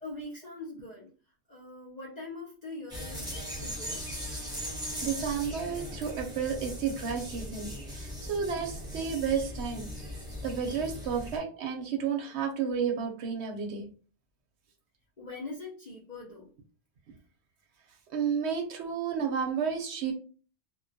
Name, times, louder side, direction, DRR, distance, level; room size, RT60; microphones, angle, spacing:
voice 1, 0.0-1.1 1.5-4.0 15.2-16.5, left 2 dB, 50° left, -4 dB, 0.5 m, -42 dB
sound 1, 2.9-11.4, equal, 5° right, 0.7 m, -39 dB
voice 2, 5.0-9.9 10.4-13.9 18.1-20.1, right 6 dB, 70° right, 2 dB, 0.8 m, -31 dB
2.2 x 2.2 x 2.6 m, 0.38 s
omnidirectional pair, 1.3 m